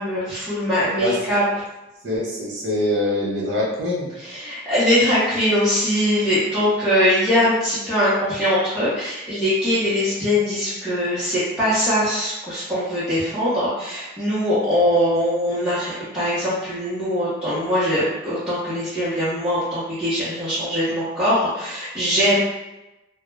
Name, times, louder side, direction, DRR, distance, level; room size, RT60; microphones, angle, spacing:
voice 1, 0.0-1.4 4.2-22.4, equal, 5° right, -13 dB, 0.7 m, -21 dB
voice 2, 2.0-4.1, left 1 dB, 65° right, -5 dB, 0.8 m, -24 dB
2.2 x 2.1 x 3.1 m, 0.98 s
head